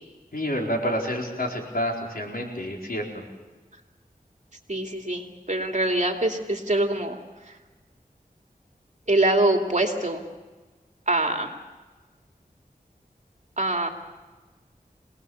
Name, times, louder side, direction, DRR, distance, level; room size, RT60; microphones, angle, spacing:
voice 1, 0.3-3.2, equal, 70° left, 0 dB, 4.5 m, -28 dB
voice 2, 4.7-7.2 9.1-10.3 11.1-11.5 13.6-13.9, right 2 dB, 50° right, 3 dB, 2.7 m, -24 dB
26.5 x 19.0 x 7.1 m, 1.3 s
wide cardioid pair, 50°, 16 cm